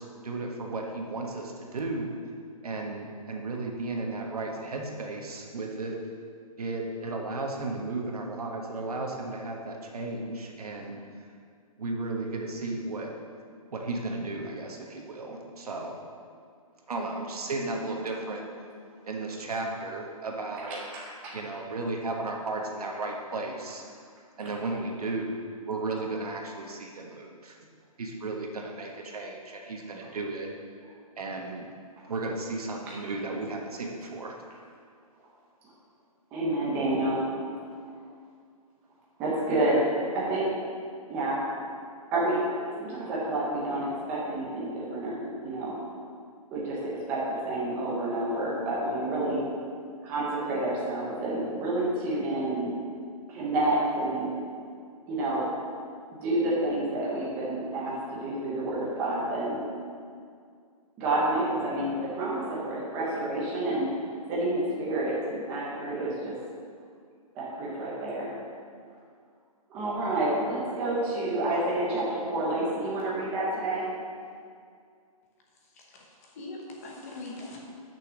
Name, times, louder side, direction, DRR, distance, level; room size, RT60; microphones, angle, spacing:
voice 1, 0.0-2.1 2.6-6.0 6.6-11.0 11.8-13.1 13.7-16.0 16.9-18.4 19.0-20.8 21.3-23.8 24.4-25.4 25.7-27.6 28.0-30.5 31.2-31.7 32.0-34.4, right 2 dB, 80° right, 1 dB, 1.4 m, -34 dB
voice 2, 20.6-21.3 36.3-37.2 37.8-37.9 39.2-40.5 41.1-41.4 42.1-42.4 42.8-45.8 46.5-49.4 50.0-52.7 53.3-54.3 55.1-55.5 56.2-59.6 61.0-63.9 64.3-66.3 67.3-68.3 69.7-73.9, right 1 dB, 10° right, -6 dB, 0.7 m, -29 dB
voice 3, 75.6-77.6, left 2 dB, 25° left, -1 dB, 0.9 m, -42 dB
6.2 x 6.0 x 6.1 m, 2.2 s
hypercardioid pair, 175°, 19 cm